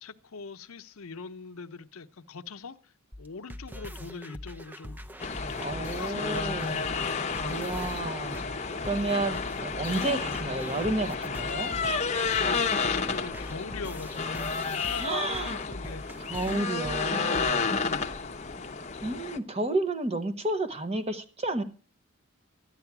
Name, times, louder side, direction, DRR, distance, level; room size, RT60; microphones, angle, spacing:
voice 1, 0.0-2.9 3.2-5.0 6.0-6.9 12.3-16.3 17.8-18.1, left 4 dB, 85° left, 0.7 m, -42 dB
sound 1, 3.1-17.5, equal, 10° right, 0.5 m, -43 dB
sound 2, 5.2-19.4, left 4 dB, 30° left, 0.7 m, -31 dB
voice 2, 5.6-6.9 7.4-11.7 14.9-15.6 16.2-17.8 19.0-21.6, right 2 dB, 30° right, 1.0 m, -31 dB
13.0 x 9.8 x 5.8 m
head